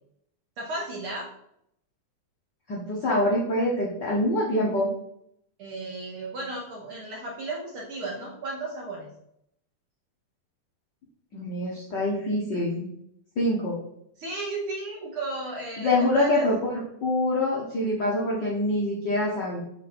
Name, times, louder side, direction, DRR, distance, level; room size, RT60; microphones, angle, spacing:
voice 1, 0.6-1.3 5.6-9.1 14.2-16.5, right 2 dB, 75° right, -2 dB, 1.2 m, -34 dB
voice 2, 2.7-4.9 11.3-12.9 13.4-13.8 15.8-19.6, left 1 dB, 75° left, -4 dB, 1.0 m, -25 dB
5.5 x 4.6 x 4.3 m, 0.76 s
omnidirectional pair, 3.6 m